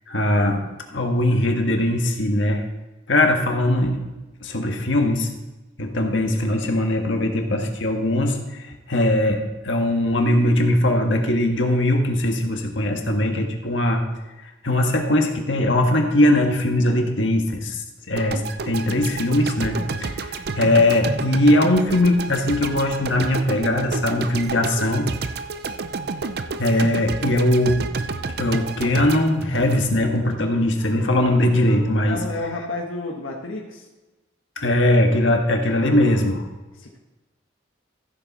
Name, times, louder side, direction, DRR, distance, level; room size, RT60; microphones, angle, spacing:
voice 1, 0.1-0.6 0.9-2.6 3.1-4.1 4.4-5.3 5.8-14.0 14.6-25.1 26.6-27.8 28.4-32.2 34.6-36.4, left 1 dB, 70° left, 3 dB, 1.6 m, -20 dB
sound 1, 18.2-30.4, right 4 dB, 50° right, 0.5 m, -30 dB
voice 2, 32.1-33.9 36.7-37.0, left 2 dB, 85° left, 0 dB, 1.5 m, -31 dB
15.0 x 7.5 x 4.2 m, 1.1 s
head